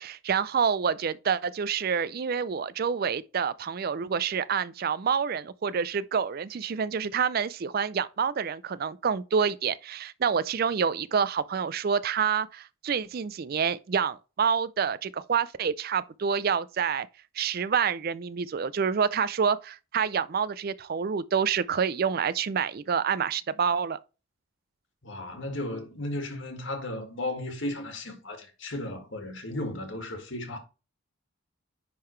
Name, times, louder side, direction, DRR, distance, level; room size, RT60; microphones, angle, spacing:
voice 1, 0.0-17.1 17.4-24.0, right 6 dB, 45° right, 0.4 m, -27 dB
voice 2, 25.0-30.6, left 1 dB, 60° left, 1.9 m, -35 dB
10.0 x 3.7 x 3.2 m
head